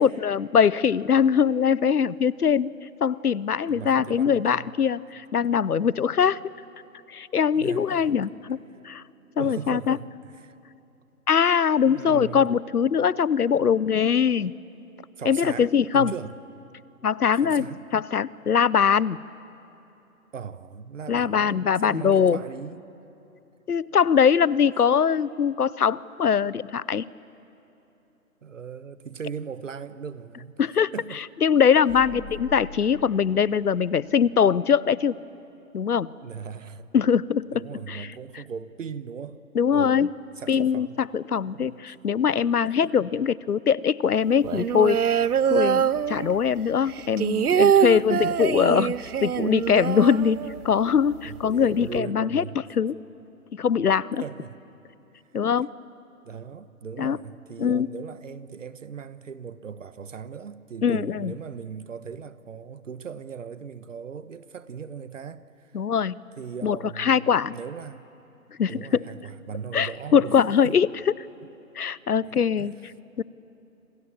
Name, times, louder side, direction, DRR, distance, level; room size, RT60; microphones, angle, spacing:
voice 1, 0.0-2.7 3.0-6.4 7.1-8.6 8.8-9.0 9.4-10.0 11.3-14.5 15.3-16.1 17.0-19.2 21.1-22.4 23.7-27.0 30.6-30.9 31.4-35.2 35.7-36.1 36.9-37.6 37.9-38.1 39.5-40.1 40.5-45.1 45.5-48.9 49.2-52.4 52.8-53.0 53.5-54.2 55.3-55.7 57.0-57.2 57.6-57.9 60.8-61.3 65.7-66.2 66.6-67.5 68.6-69.1 69.7-70.9 71.8-72.7 73.2-73.3, left 7 dB, 75° left, 0.9 m, -22 dB
voice 2, 3.7-4.7 6.2-6.4 7.5-8.2 9.4-10.5 11.8-12.5 15.2-16.3 17.4-17.9 20.3-22.9 28.4-30.5 30.9-31.2 32.1-32.4 36.2-36.9 37.5-39.4 39.7-40.1 40.4-41.0 41.5-41.8 42.6-42.9 48.0-48.2 51.2-52.6 54.2-54.5 56.2-65.7 66.4-68.0 68.7-70.4 70.6-70.8 72.6-72.7, right 6 dB, 55° right, 1.3 m, -38 dB
sound 1, 31.9-33.7, left 2 dB, 10° left, 1.8 m, -42 dB
sound 2, 44.4-46.6 46.9-50.8 51.1-51.2 51.5-52.0, right 8 dB, 75° right, 0.7 m, -24 dB
27.5 x 27.0 x 7.3 m
figure-of-eight pair, 150°, 46 cm